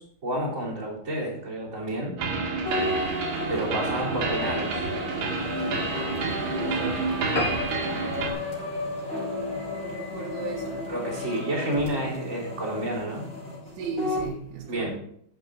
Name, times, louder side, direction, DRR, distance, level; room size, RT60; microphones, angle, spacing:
voice 1, 0.0-2.1 3.5-4.8 6.6-6.9 10.9-13.2 14.7-14.9, right 1 dB, 20° right, 3.4 m, -30 dB
sound 1, 2.2-8.3, right 4 dB, 55° right, 3.2 m, -29 dB
sound 2, 2.7-14.3, left 2 dB, 15° left, 3.6 m, -33 dB
voice 2, 5.7-7.6 9.3-10.9 13.7-14.9, right 3 dB, 80° right, 3.6 m, -37 dB
sound 3, 7.3-10.1 10.6-10.8 11.2-11.3 11.6-11.7 11.9-12.0, left 2 dB, 75° left, 0.8 m, -34 dB
12.0 x 8.5 x 4.0 m
omnidirectional pair, 5.5 m